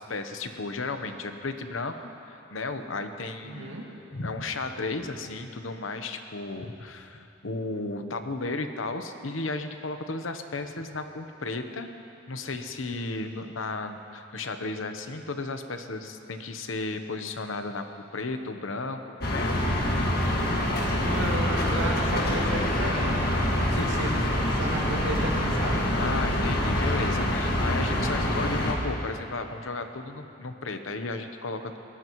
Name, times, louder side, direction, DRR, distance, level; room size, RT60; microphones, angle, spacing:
voice 1, 0.0-1.9 2.3-3.7 4.1-11.9 12.3-17.9 18.1-19.6 20.2-20.5 23.7-23.8 25.9-31.8, left 3 dB, 90° left, 7 dB, 1.0 m, -34 dB
voice 2, 3.4-3.8 21.0-24.2 24.5-25.9, right 1 dB, 70° right, -2 dB, 2.3 m, -33 dB
sound 1, 19.2-28.7, left 1 dB, 50° left, 1.9 m, -25 dB
22.0 x 18.0 x 3.1 m, 2.8 s
head